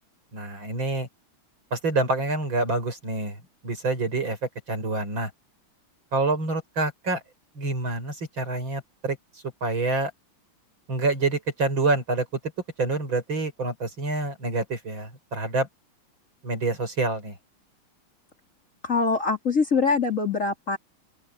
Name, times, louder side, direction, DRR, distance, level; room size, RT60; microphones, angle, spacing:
voice 1, 0.3-1.1 1.7-4.4 4.7-5.3 6.1-7.2 7.6-9.2 9.6-10.1 10.9-12.3 12.8-15.7 16.4-17.4, right 3 dB, 65° right, 7.2 m, -27 dB
voice 2, 18.8-20.8, left 4 dB, 35° left, 3.4 m, -23 dB
open air
omnidirectional pair, 2.4 m